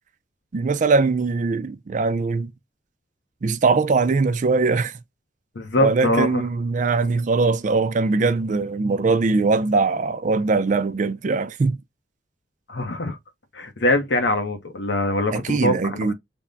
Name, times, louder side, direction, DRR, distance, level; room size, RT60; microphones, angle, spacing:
voice 1, 0.5-2.5 3.4-4.9 5.8-11.8 15.3-16.1, right 4 dB, 40° right, 0.4 m, -21 dB
voice 2, 5.5-6.4 12.7-13.2 13.5-16.1, left 1 dB, 65° left, 0.7 m, -23 dB
3.5 x 2.1 x 3.8 m
head